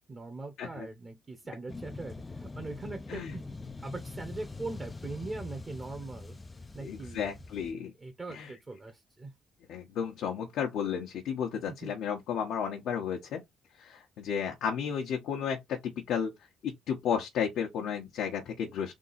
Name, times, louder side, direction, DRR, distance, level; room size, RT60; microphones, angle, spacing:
voice 1, 0.1-3.4 3.8-6.3 6.7-7.4 8.0-9.3 11.7-11.9, right 3 dB, 30° right, 1.1 m, -41 dB
sound 1, 1.7-7.7, left 3 dB, 20° left, 0.5 m, -43 dB
voice 2, 6.8-7.9 8.3-8.5 9.7-13.4 13.8-16.3 16.6-18.9, left 7 dB, 80° left, 1.0 m, -33 dB
3.7 x 2.8 x 4.1 m
cardioid pair, 90°, 0 cm